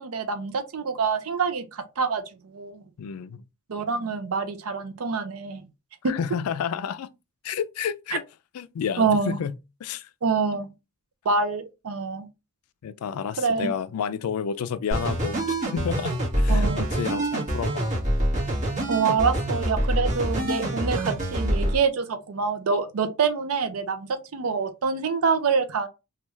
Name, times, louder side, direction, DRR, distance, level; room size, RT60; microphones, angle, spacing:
voice 1, 0.0-2.8 3.7-5.6 6.0-6.1 9.0-9.4 10.2-10.7 11.3-12.3 13.4-13.7 16.5-16.8 18.9-25.9, right 5 dB, 75° right, 0.5 m, -26 dB
voice 2, 3.0-3.4 6.1-7.1 7.4-8.2 8.5-9.6 9.8-10.1 12.8-15.4 15.7-18.0, left 7 dB, 80° left, 0.3 m, -30 dB
sound 1, 14.9-21.8, right 1 dB, 35° right, 1.5 m, -25 dB
3.4 x 2.3 x 3.0 m
head